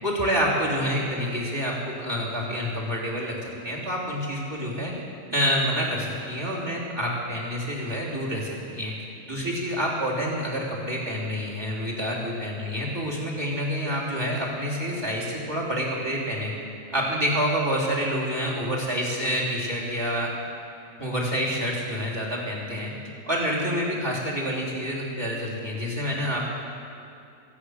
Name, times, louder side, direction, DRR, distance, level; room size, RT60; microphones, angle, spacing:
voice 1, 0.0-4.9 5.3-8.9 9.3-16.5 16.9-20.3 21.0-22.9 23.3-26.4, equal, 15° right, -4 dB, 3.4 m, -28 dB
23.0 x 8.9 x 6.5 m, 2.5 s
omnidirectional pair, 1.7 m